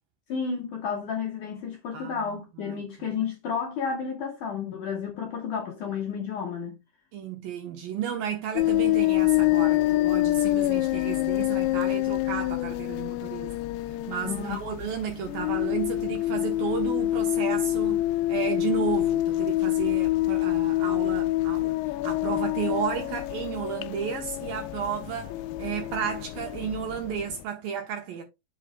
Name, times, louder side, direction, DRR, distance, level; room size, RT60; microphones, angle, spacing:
voice 1, 0.3-6.7 14.2-14.6, left 6 dB, 65° left, 2.0 m, -31 dB
voice 2, 1.9-2.4 2.7-2.8 7.1-13.5 13.9-18.0 18.3-28.2, right 8 dB, 70° right, 2.3 m, -33 dB
sound 1, 8.6-27.4, left 16 dB, 85° left, 2.3 m, -26 dB
8.2 x 7.7 x 2.2 m
omnidirectional pair, 5.1 m